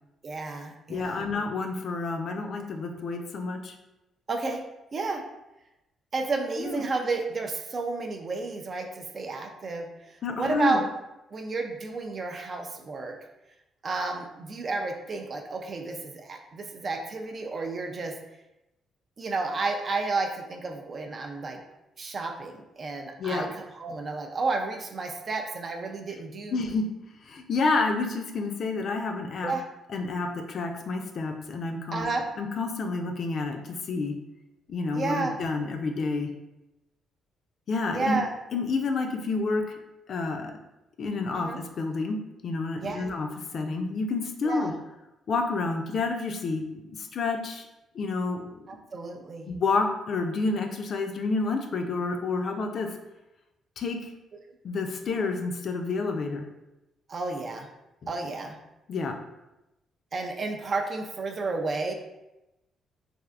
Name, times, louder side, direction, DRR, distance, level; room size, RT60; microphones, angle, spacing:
voice 1, 0.2-1.3 4.3-4.6 4.9-5.2 6.1-10.9 11.3-13.2 13.8-18.1 19.2-21.6 22.0-26.6 29.4-29.6 31.9-32.3 34.9-35.4 37.9-38.3 41.3-41.6 42.8-43.1 44.4-44.7 48.7-49.5 57.1-57.7 58.1-58.6 60.1-61.9, right 3 dB, 45° right, 4 dB, 0.4 m, -31 dB
voice 2, 0.9-3.7 6.6-6.8 10.2-10.8 23.2-23.4 26.5-26.9 27.2-29.5 29.9-32.0 32.4-34.1 34.7-36.3 37.7-38.2 38.5-39.6 40.1-40.5 41.0-43.3 43.5-44.7 45.3-47.7 47.9-48.5 49.5-52.9 53.8-54.1 54.6-56.4 58.0-58.1 58.9-59.2, left 3 dB, 55° left, 4 dB, 0.4 m, -29 dB
3.3 x 2.5 x 2.4 m, 0.95 s
cardioid pair, 90°, 0 cm